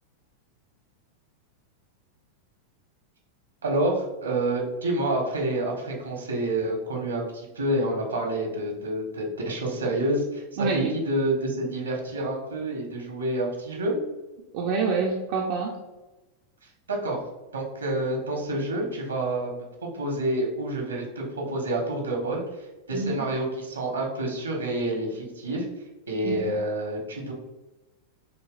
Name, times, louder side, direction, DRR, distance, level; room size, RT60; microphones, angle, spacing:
voice 1, 3.6-10.4 10.7-13.9 16.9-17.2 17.5-19.5 19.9-22.4 22.9-25.6 26.1-27.3, right 1 dB, 75° right, 0 dB, 1.3 m, -28 dB
voice 2, 10.6-10.9 14.5-15.7 22.9-23.3 26.2-26.5, right 4 dB, 50° right, -2 dB, 0.6 m, -27 dB
6.7 x 3.1 x 2.5 m, 1.1 s
figure-of-eight pair, 90°, 0 cm